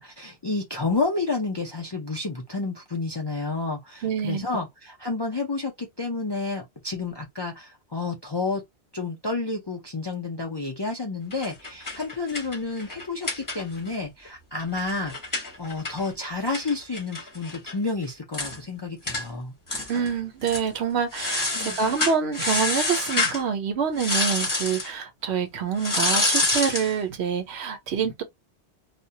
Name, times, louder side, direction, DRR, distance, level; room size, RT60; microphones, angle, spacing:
voice 1, 0.0-8.6 8.9-19.5 21.5-21.8, left 3 dB, 40° left, 0.3 m, -30 dB
voice 2, 4.0-4.4 19.9-28.2, right 6 dB, 75° right, 0.9 m, -26 dB
sound 1, 11.3-13.9 14.2-14.3 14.6-17.7 18.0-18.1 18.3-18.6 19.1-19.2 19.7-20.1 20.4-20.7 21.1-23.4 24.0-24.9 25.8-26.9, left 2 dB, 20° left, 0.9 m, -27 dB
2.3 x 2.1 x 2.6 m
omnidirectional pair, 1.1 m